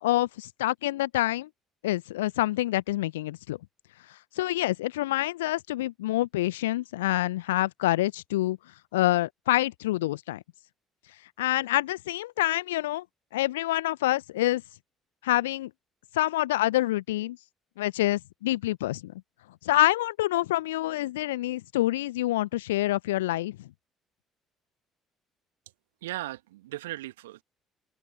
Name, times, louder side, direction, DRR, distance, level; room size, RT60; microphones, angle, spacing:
voice 1, 0.0-1.5 1.8-3.6 4.4-8.6 8.9-10.4 11.4-13.0 13.3-14.6 15.2-15.7 16.1-17.4 17.8-19.1 19.6-23.7, left 16 dB, 75° left, 1.0 m, -27 dB
voice 2, 26.0-27.4, right 16 dB, 70° right, 1.7 m, -37 dB
open air
figure-of-eight pair, 50°, 0 cm